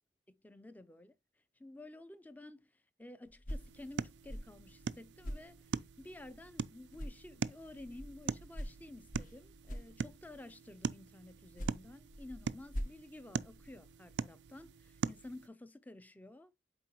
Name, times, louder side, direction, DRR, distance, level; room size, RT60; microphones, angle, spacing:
voice 1, 0.3-1.1 1.6-16.6, left 2 dB, 10° left, 0.4 m, -52 dB
sound 1, 3.2-6.6 6.9-10.5 11.3-14.0, equal, 45° left, 0.9 m, -46 dB
sound 2, 3.5-15.5, right 6 dB, 90° right, 0.4 m, -43 dB
7.7 x 4.6 x 2.9 m
head